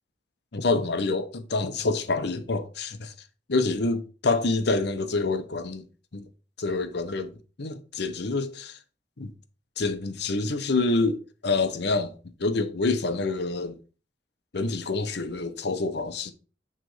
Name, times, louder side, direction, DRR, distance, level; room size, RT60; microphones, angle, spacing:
voice 1, 0.5-3.1 3.5-5.8 6.1-6.3 6.6-7.3 7.6-8.8 9.2-9.3 9.8-12.1 12.4-13.8 14.5-16.3, left 3 dB, 70° left, 0.8 m, -27 dB
9.2 x 3.3 x 4.8 m
head